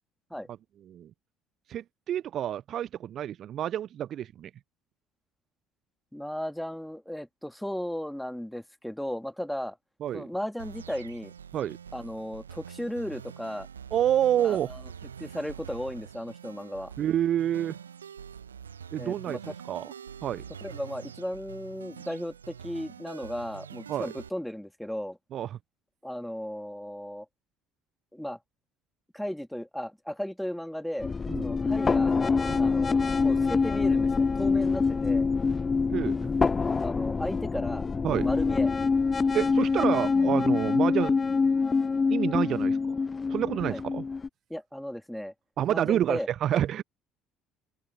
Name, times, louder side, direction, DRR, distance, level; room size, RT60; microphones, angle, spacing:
voice 1, 1.7-4.5 10.0-10.3 11.5-11.8 13.9-14.7 17.0-17.8 18.9-19.9 20.2-20.4 23.9-24.1 25.3-25.6 31.3-31.5 32.5-32.6 35.9-36.1 38.0-38.3 39.3-41.1 42.1-43.0 43.3-44.0 45.6-46.8, right 11 dB, 45° right, 0.9 m, -28 dB
voice 2, 6.1-9.8 10.1-11.3 11.9-13.7 14.4-14.8 15.2-16.9 19.0-19.5 20.6-25.2 26.0-27.3 28.1-28.4 29.1-31.1 31.4-32.2 32.6-35.3 36.8-38.7 43.7-43.8 44.5-45.3 45.7-46.3, equal, 5° left, 2.5 m, -35 dB
sound 1, 10.6-24.3, right 7 dB, 80° right, 1.6 m, -45 dB
sound 2, 31.0-44.3, left 4 dB, 25° left, 0.4 m, -25 dB
open air
figure-of-eight pair, 55°, 0 cm